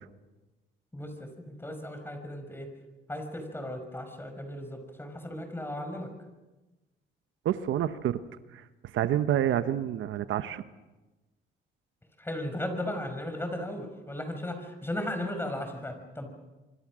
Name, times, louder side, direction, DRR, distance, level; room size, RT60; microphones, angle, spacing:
voice 1, 0.9-2.7 3.1-6.1 12.2-16.3, left 1 dB, 10° left, 6 dB, 5.7 m, -36 dB
voice 2, 7.4-8.2 8.5-8.6 8.9-10.6, right 11 dB, 75° right, 11 dB, 1.0 m, -28 dB
25.5 x 25.5 x 6.3 m, 1.1 s
cardioid pair, 90°, 20 cm